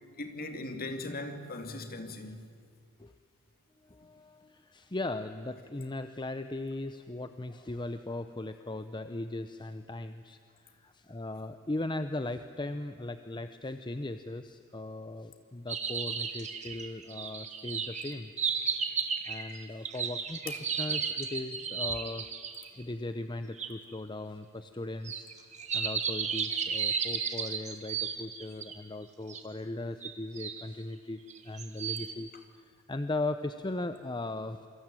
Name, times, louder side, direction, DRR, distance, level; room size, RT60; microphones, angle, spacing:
voice 1, 0.2-2.4, left 2 dB, 45° left, 2.6 m, -39 dB
voice 2, 3.8-18.3 19.3-22.3 22.7-25.3 25.7-34.7, left 2 dB, 20° left, 0.7 m, -38 dB
sound 1, 15.7-22.7 23.6-23.7 25.0-28.8 29.3-29.4 30.0-30.6 31.3-32.1, right 6 dB, 35° right, 2.1 m, -34 dB
28.0 x 24.0 x 9.0 m
head